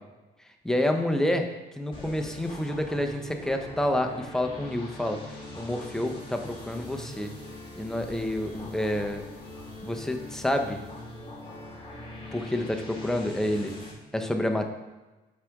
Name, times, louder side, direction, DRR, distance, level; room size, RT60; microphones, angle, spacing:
voice 1, 0.6-1.5 1.8-5.2 5.6-7.3 7.8-9.2 9.8-10.8 12.3-13.8 14.1-14.7, left 1 dB, 5° left, 4 dB, 0.7 m, -28 dB
sound 1, 1.9-13.9, left 2 dB, 25° left, 1.9 m, -42 dB
7.5 x 5.0 x 3.6 m, 1.1 s
cardioid pair, 90°, 20 cm